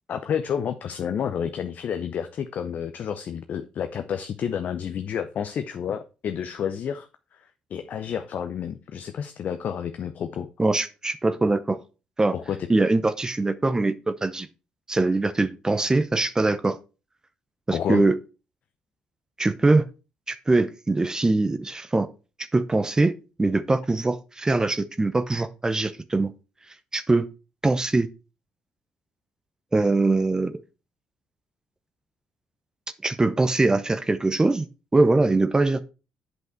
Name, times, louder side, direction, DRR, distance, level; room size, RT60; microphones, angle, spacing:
voice 1, 0.1-10.5 12.3-12.7 17.7-18.0, left 8 dB, 60° left, 0.7 m, -30 dB
voice 2, 10.6-11.8 12.2-12.3 12.7-14.5 14.9-16.8 17.7-18.2 19.4-19.9 20.3-22.1 22.5-26.3 26.9-27.3 27.6-28.1 29.7-30.6 33.0-34.7 34.9-35.8, right 2 dB, 20° right, 0.8 m, -22 dB
8.0 x 5.7 x 4.5 m
hypercardioid pair, 50°, 3 cm